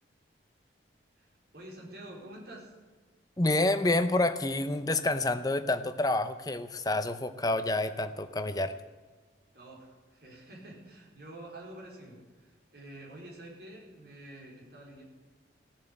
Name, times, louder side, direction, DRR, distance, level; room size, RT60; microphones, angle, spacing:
voice 1, 1.2-2.7 9.5-15.0, right 1 dB, 55° right, -2 dB, 4.4 m, -48 dB
voice 2, 3.4-8.8, left 2 dB, 20° left, 10 dB, 0.7 m, -28 dB
16.0 x 7.5 x 8.9 m, 1.4 s
head